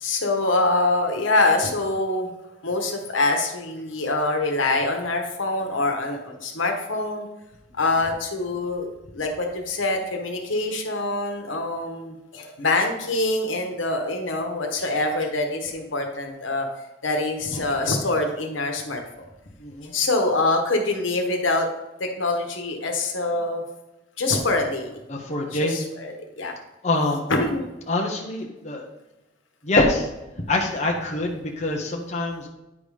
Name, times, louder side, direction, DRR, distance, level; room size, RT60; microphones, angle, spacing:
voice 1, 0.0-2.3 2.6-7.3 7.8-8.9 9.1-16.7 17.0-19.2 19.8-21.7 22.0-23.6 24.2-24.9 25.5-26.5 27.3-27.6, left 2 dB, 90° left, 3 dB, 1.2 m, -25 dB
voice 2, 19.6-19.9 25.1-25.8 26.8-27.2 27.9-28.8 29.6-30.1 30.5-32.5, left 2 dB, 35° left, 0 dB, 0.9 m, -24 dB
9.5 x 3.6 x 4.9 m, 0.98 s
head